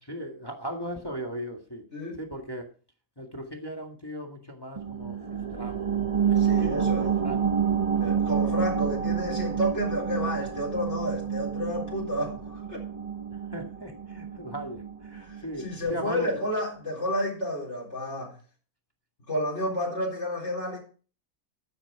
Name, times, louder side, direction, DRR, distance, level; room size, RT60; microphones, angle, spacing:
voice 1, 0.1-1.8 2.2-2.7 3.2-7.6 13.3-16.4, equal, 15° left, 1.9 m, -38 dB
sound 1, 4.8-15.9 16.3-16.4, right 7 dB, 30° right, 0.7 m, -28 dB
voice 2, 6.4-7.1 8.0-12.8 15.3-18.3 19.3-20.8, left 1 dB, 50° left, 4.4 m, -31 dB
13.0 x 9.2 x 4.7 m
omnidirectional pair, 1.6 m